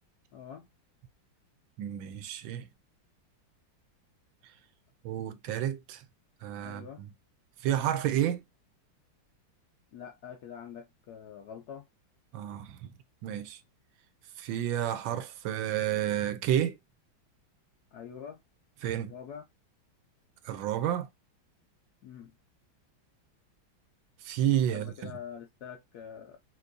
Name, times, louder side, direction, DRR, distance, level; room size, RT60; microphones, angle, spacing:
voice 1, 0.3-0.7 6.6-7.0 9.9-11.9 17.9-18.4 19.1-19.5 22.0-22.3 24.7-26.4, left 8 dB, 70° left, 0.9 m, -45 dB
voice 2, 1.8-2.6 5.0-6.0 6.4-7.1 7.6-8.4 12.3-12.9 13.2-13.6 14.4-16.8 18.8-19.1 20.4-21.1 24.2-25.1, right 11 dB, 75° right, 1.3 m, -30 dB
5.9 x 2.6 x 2.6 m
omnidirectional pair, 2.2 m